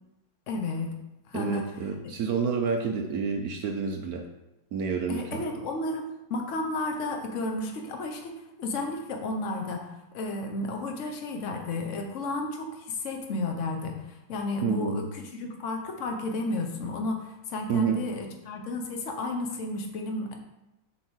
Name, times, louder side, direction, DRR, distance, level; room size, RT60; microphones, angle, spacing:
voice 1, 0.5-0.9 1.3-1.7 5.1-8.3 8.6-9.8 10.1-20.4, left 2 dB, 45° left, 3 dB, 1.0 m, -32 dB
voice 2, 1.3-4.2 4.7-5.4 14.6-15.0 17.7-18.0, right 5 dB, 70° right, 3 dB, 0.9 m, -29 dB
7.2 x 3.7 x 6.4 m, 0.96 s
omnidirectional pair, 2.4 m